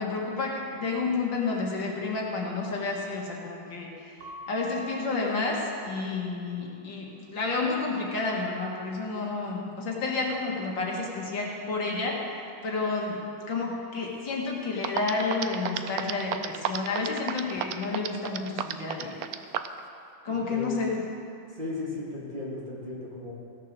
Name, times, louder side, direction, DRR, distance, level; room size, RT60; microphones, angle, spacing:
voice 1, 0.0-3.9 4.5-12.2 12.6-13.2 13.5-19.2 20.2-21.0, left 3 dB, 70° left, -2 dB, 2.3 m, -30 dB
Keyboard (musical) / Bell, 4.2-6.6, equal, 60° right, 1.3 m, -45 dB
sound 1, 14.5-14.6 14.8-19.8, right 10 dB, 85° right, 0.8 m, -30 dB
voice 2, 20.3-20.8 21.5-23.3, left 2 dB, 25° right, -6 dB, 2.1 m, -36 dB
16.5 x 6.7 x 6.4 m, 2.5 s
omnidirectional pair, 2.2 m